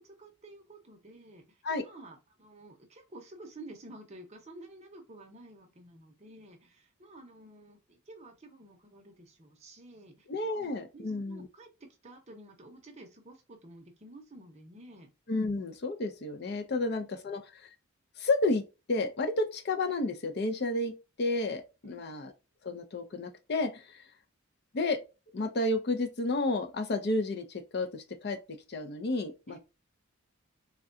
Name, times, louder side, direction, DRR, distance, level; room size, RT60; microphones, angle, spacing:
voice 1, 0.0-10.3 10.5-15.1 16.7-17.1 21.8-22.1 29.5-29.6, right 2 dB, 30° right, 0.7 m, -51 dB
voice 2, 10.3-11.5 15.3-17.7 18.2-22.3 22.6-24.0 24.7-25.0 25.3-28.4 28.7-29.6, left 2 dB, 50° left, 0.5 m, -31 dB
3.6 x 2.2 x 2.5 m
head